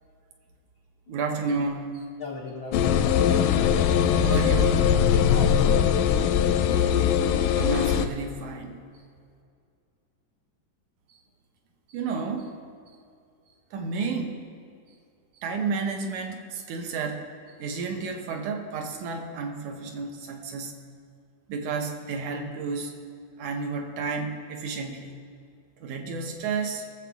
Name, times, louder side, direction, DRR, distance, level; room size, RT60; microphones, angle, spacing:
voice 1, 1.1-2.0 4.2-4.9 7.6-8.8 11.9-12.5 13.7-14.4 15.4-17.2 17.6-20.8 21.5-22.9 23.4-25.1 25.8-26.8, right 4 dB, 70° right, 3 dB, 2.2 m, -31 dB
voice 2, 2.2-3.2 5.3-6.9, left 4 dB, 70° left, -1 dB, 1.2 m, -36 dB
sound 1, 2.7-8.1, left 8 dB, 90° left, 2.2 m, -21 dB
19.5 x 7.3 x 3.5 m, 2.3 s
omnidirectional pair, 3.7 m